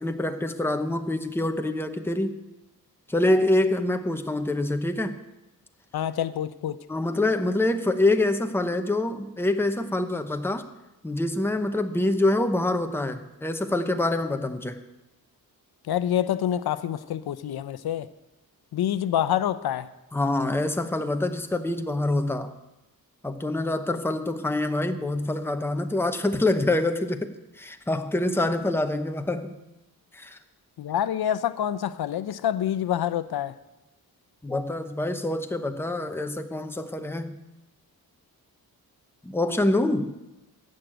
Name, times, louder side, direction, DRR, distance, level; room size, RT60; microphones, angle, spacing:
voice 1, 0.0-2.4 3.1-5.2 6.9-10.7 11.0-14.8 20.1-22.5 23.2-27.3 27.5-29.6 30.1-30.4 34.4-37.4 39.2-40.2, left 2 dB, 5° left, 7 dB, 0.8 m, -26 dB
voice 2, 5.9-6.8 15.9-18.1 18.7-19.9 30.8-33.5, left 10 dB, 85° left, 14 dB, 0.7 m, -27 dB
15.0 x 6.6 x 9.0 m, 0.98 s
wide cardioid pair, 150°, 37 cm